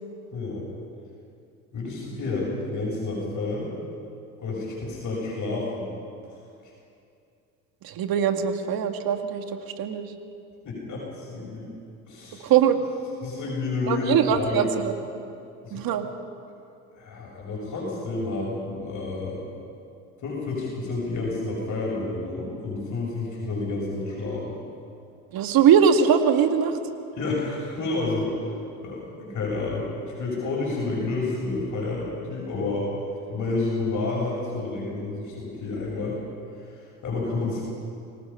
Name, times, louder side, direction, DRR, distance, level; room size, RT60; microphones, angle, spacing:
voice 1, 0.3-0.6 1.7-3.7 4.4-5.9 10.6-11.7 12.1-12.5 13.2-14.7 15.6-15.8 16.9-19.3 20.2-24.6 27.1-28.3 28.8-32.9 33.3-36.2 36.7-37.6, left 3 dB, 50° left, -4 dB, 7.3 m, -30 dB
voice 2, 7.8-10.1 12.4-12.8 13.9-15.0 15.7-16.1 25.3-26.8, right 8 dB, 60° right, 6 dB, 2.0 m, -21 dB
25.5 x 18.5 x 5.7 m, 2.5 s
hypercardioid pair, 65°, 39 cm